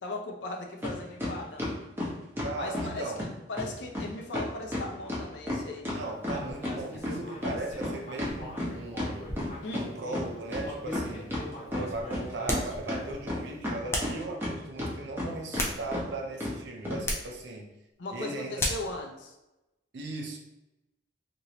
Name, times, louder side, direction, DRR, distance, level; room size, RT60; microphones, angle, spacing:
voice 1, 0.0-1.7 2.6-3.1 3.5-5.9 9.6-9.9 18.0-19.3, left 2 dB, 90° left, 1 dB, 0.6 m, -38 dB
sound 1, 0.8-0.9 1.2-2.9 3.2-3.3 3.6-3.7 3.9-4.1 4.3-6.8 7.0-9.8 10.1-10.2 10.5-11.4 11.7-12.6 12.9-14.5 14.8-15.3 15.5-15.7 15.9-16.0 16.4-16.5 16.9-17.0, left 1 dB, 15° right, 0.7 m, -32 dB
voice 2, 2.4-3.2 5.9-9.3 9.8-11.4 11.7-17.7 18.1-18.6 19.9-20.4, right 2 dB, 85° right, 1 dB, 0.6 m, -37 dB
Human voice, 6.3-10.2 10.6-13.3, equal, 35° left, 0.8 m, -43 dB
sound 2, 12.4-12.8 13.9-14.2 15.3-16.2 17.0-17.4 18.6-18.9, left 1 dB, 15° left, 0.4 m, -32 dB
3.0 x 2.6 x 2.8 m, 0.96 s
head